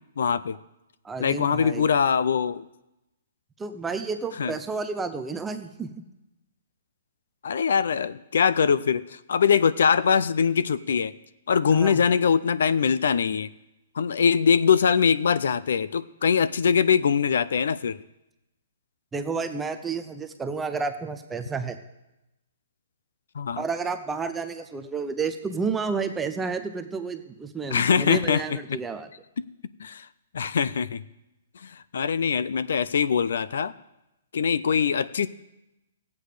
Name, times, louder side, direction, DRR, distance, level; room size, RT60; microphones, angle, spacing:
voice 1, 0.2-0.6 1.2-2.6 4.4-4.5 7.4-11.1 11.5-13.5 14.0-18.0 23.4-23.6 27.7-28.4 28.7-28.8 29.8-30.1 30.3-31.0 31.6-33.7 34.3-35.3, left 6 dB, 65° left, 18 dB, 0.4 m, -22 dB
voice 2, 1.0-1.8 3.6-6.0 11.7-12.0 19.1-21.8 23.6-29.1, right 4 dB, 5° right, 8 dB, 0.5 m, -31 dB
15.0 x 8.4 x 4.9 m, 0.93 s
hypercardioid pair, 175°, 0 cm